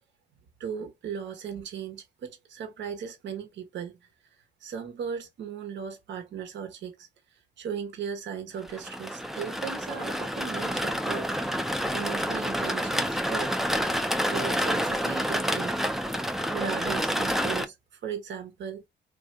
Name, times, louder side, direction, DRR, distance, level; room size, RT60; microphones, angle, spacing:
voice 1, 0.6-4.0 4.6-11.3 11.9-13.5 14.3-15.7 16.5-18.8, right 7 dB, 65° right, 0.9 m, -37 dB
sound 1, 8.6-17.7, equal, ahead, 0.3 m, -28 dB
3.3 x 2.5 x 2.4 m
cardioid pair, 90°, 20 cm